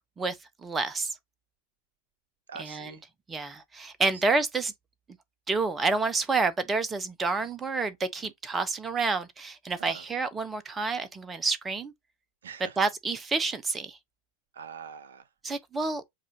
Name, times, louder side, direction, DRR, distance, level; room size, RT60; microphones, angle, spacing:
voice 1, 0.2-1.2 2.6-2.9 3.3-4.7 5.5-11.9 12.8-14.0 15.4-16.0, right 3 dB, 15° right, 0.7 m, -29 dB
voice 2, 2.5-3.0 4.1-4.2 7.4-7.5 9.8-10.1 12.4-12.8 14.5-15.3, right 6 dB, 65° right, 0.6 m, -44 dB
7.4 x 2.5 x 2.8 m
figure-of-eight pair, 90°, 0 cm